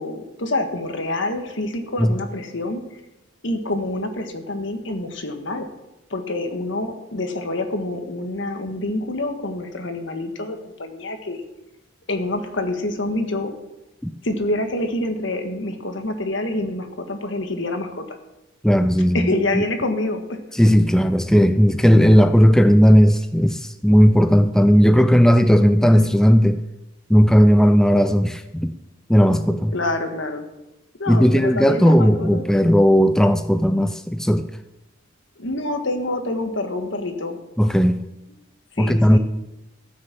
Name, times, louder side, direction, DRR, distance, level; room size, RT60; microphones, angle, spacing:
voice 1, 0.0-2.8 3.4-5.7 6.1-11.5 12.1-13.5 14.2-18.2 19.1-20.4 29.7-30.5 31.0-32.4 35.4-37.4 38.8-39.2, left 2 dB, 70° left, 6 dB, 1.6 m, -27 dB
voice 2, 18.6-19.6 20.5-26.6 27.1-28.7 29.1-29.7 31.1-34.5 37.6-38.0 38.8-39.2, equal, 5° left, 8 dB, 0.4 m, -15 dB
14.0 x 6.5 x 7.4 m, 0.95 s
head